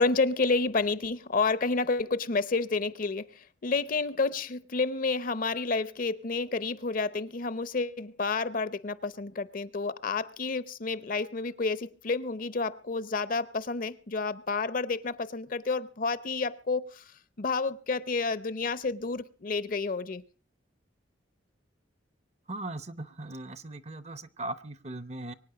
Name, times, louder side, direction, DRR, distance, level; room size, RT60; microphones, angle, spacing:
voice 1, 0.0-3.3 3.6-17.0 17.4-20.2, left 3 dB, 45° left, 0.7 m, -30 dB
voice 2, 22.5-25.3, right 2 dB, 35° right, 0.7 m, -39 dB
24.0 x 9.2 x 5.0 m
head